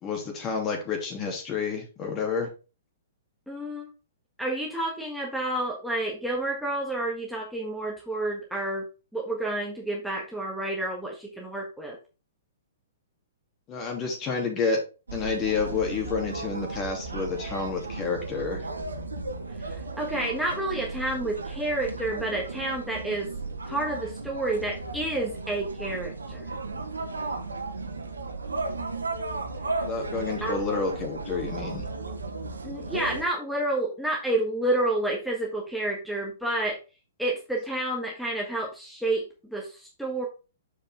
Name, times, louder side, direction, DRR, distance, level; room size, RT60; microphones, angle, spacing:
voice 1, 0.0-2.5 13.7-14.8 15.1-18.7 29.8-31.9, left 5 dB, 30° left, 2 dB, 2.6 m, -29 dB
voice 2, 3.5-3.9 4.4-8.8 9.1-12.0 19.5-23.3 23.6-26.5 30.4-30.6 32.6-36.8 37.2-39.2 39.5-40.3, right 1 dB, ahead, -3 dB, 1.5 m, -29 dB
sound 1, 15.1-33.2, right 3 dB, 85° right, 1.2 m, -35 dB
7.0 x 5.3 x 3.6 m, 0.32 s
hypercardioid pair, 120°, 0 cm